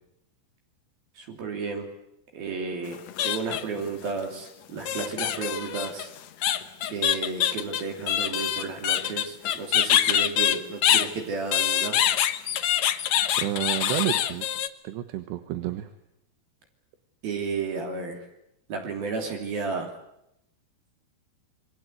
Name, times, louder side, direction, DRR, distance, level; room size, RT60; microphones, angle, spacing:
voice 1, 1.1-1.9 2.3-6.1 6.9-12.0 17.2-18.2 18.7-19.9, right 4 dB, 60° right, 3 dB, 4.9 m, -32 dB
sound 1, 2.9-3.8 4.9-11.1 11.5-14.7, left 11 dB, 80° left, 1.5 m, -25 dB
voice 2, 13.4-14.5 14.8-15.9, right 13 dB, 80° right, 9 dB, 3.4 m, -30 dB
27.5 x 23.0 x 8.2 m, 0.81 s
omnidirectional pair, 4.9 m